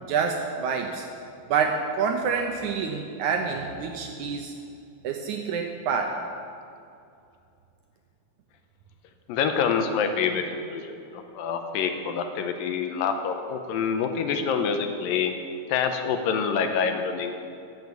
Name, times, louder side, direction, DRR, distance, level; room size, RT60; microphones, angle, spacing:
voice 1, 0.1-1.0 1.5-4.5 5.0-6.2, right 6 dB, 75° right, 3 dB, 1.8 m, -27 dB
voice 2, 9.3-15.4 15.7-17.3, left 6 dB, 80° left, 6 dB, 2.5 m, -26 dB
14.0 x 7.1 x 8.0 m, 2.5 s
omnidirectional pair, 4.2 m